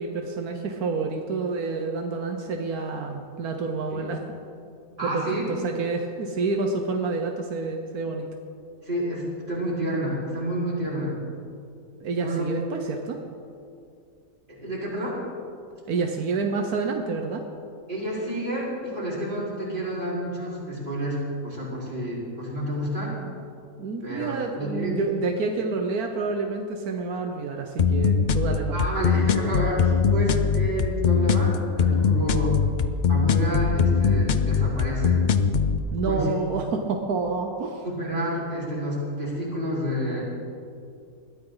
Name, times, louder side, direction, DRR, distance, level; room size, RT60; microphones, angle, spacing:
voice 1, 0.0-4.2 5.0-5.2 5.5-8.3 12.0-13.2 15.9-17.4 23.8-28.9 35.9-37.8, right 4 dB, 85° right, 3 dB, 1.5 m, -28 dB
voice 2, 5.0-5.4 8.8-11.1 12.1-12.5 14.5-15.2 17.9-23.2 24.0-25.0 28.7-32.6 33.1-35.2 36.0-36.3 37.8-40.3, equal, 35° right, -7 dB, 4.9 m, -29 dB
sound 1, 27.8-35.8, left 6 dB, 60° left, 0.5 m, -21 dB
21.0 x 14.0 x 4.0 m, 2.4 s
omnidirectional pair, 1.5 m